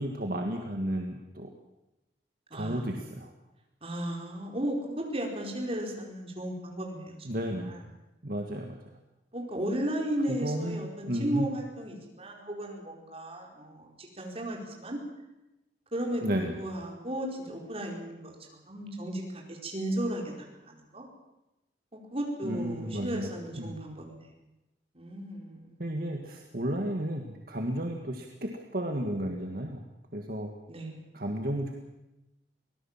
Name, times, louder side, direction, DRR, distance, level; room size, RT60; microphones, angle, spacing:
voice 1, 0.0-1.5 2.5-3.3 7.2-7.7 8.2-9.0 10.3-11.5 16.2-16.6 22.4-23.3 23.6-23.8 25.8-29.8 30.1-30.5 31.1-31.7, right 1 dB, 55° right, 2 dB, 1.9 m, -33 dB
voice 2, 2.5-2.9 3.8-7.8 9.3-15.0 15.9-21.0 21.9-24.3 24.9-25.7 30.7-31.0, right 1 dB, 35° right, 0 dB, 4.7 m, -35 dB
24.5 x 17.5 x 7.4 m, 0.97 s
head